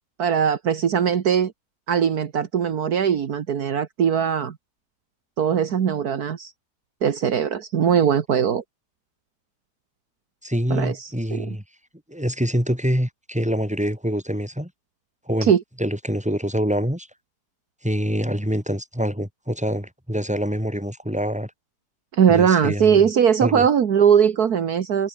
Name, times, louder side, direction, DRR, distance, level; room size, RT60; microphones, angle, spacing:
voice 1, 0.2-1.5 1.9-4.5 5.4-6.5 7.0-8.6 10.7-11.5 15.4-15.6 22.1-25.1, right 8 dB, 70° right, 1.8 m, -20 dB
voice 2, 10.4-11.6 12.1-14.7 15.3-15.5 15.8-17.1 17.8-21.5 22.3-23.0 23.4-23.7, equal, 5° right, 5.9 m, -25 dB
omnidirectional pair, 1.7 m